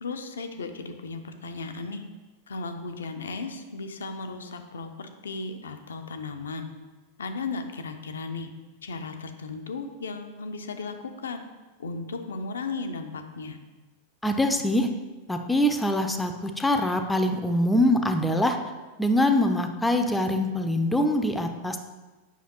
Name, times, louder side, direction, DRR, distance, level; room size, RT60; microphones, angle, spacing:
voice 1, 0.0-2.0 2.5-6.7 7.2-8.5 8.8-11.0 11.2-11.4 11.8-13.6, left 3 dB, 70° left, 7 dB, 0.6 m, -35 dB
voice 2, 14.2-14.9 15.3-18.6 19.0-21.8, left 1 dB, 5° left, 6 dB, 0.6 m, -24 dB
8.3 x 5.6 x 2.9 m, 1.2 s
figure-of-eight pair, 90°, 0 cm